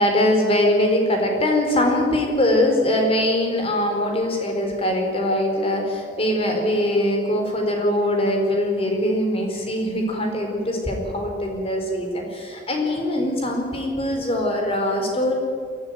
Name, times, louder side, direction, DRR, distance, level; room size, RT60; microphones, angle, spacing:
voice 1, 0.0-15.4, left 1 dB, 35° left, 2 dB, 4.4 m, -22 dB
22.0 x 14.5 x 9.3 m, 2.2 s
head